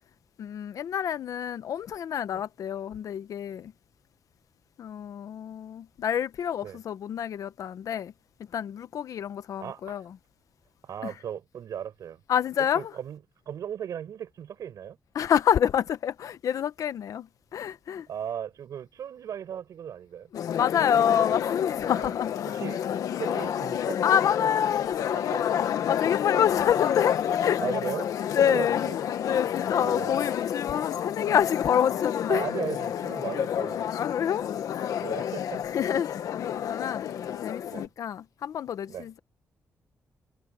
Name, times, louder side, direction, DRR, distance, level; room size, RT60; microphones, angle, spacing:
voice 1, 0.4-3.7 4.8-8.1 8.5-10.2 11.0-11.1 12.3-12.9 15.1-18.1 20.3-22.5 24.0-25.5 25.9-27.6 28.3-28.8 29.2-32.5 33.9-34.5 35.6-36.3 36.6-39.2, left 9 dB, 70° left, 0.9 m, -27 dB
voice 2, 9.6-10.0 10.8-12.2 12.6-13.2 13.5-15.0 18.1-20.3 21.8-22.1 22.5-22.8 23.2-24.0 25.1-25.5 27.6-28.1 28.5-28.9 29.8-30.2 31.3-31.4 32.3-33.8 35.0-35.6 37.7-37.9 38.9-39.1, right 9 dB, 75° right, 4.7 m, -36 dB
sound 1, 20.3-37.9, left 9 dB, 85° left, 1.3 m, -29 dB
wide cardioid pair, 135°, 6 cm